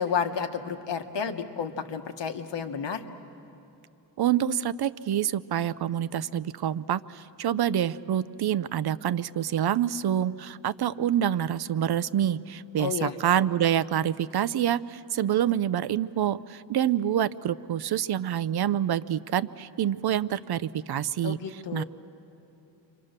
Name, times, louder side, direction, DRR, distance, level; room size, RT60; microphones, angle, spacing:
voice 1, 0.0-3.0 12.8-13.2 21.2-21.8, left 6 dB, 70° left, 5 dB, 1.4 m, -31 dB
voice 2, 4.2-21.8, right 10 dB, 60° right, 15 dB, 0.6 m, -27 dB
29.0 x 24.5 x 6.6 m, 2.8 s
wide cardioid pair, 155°, 45 cm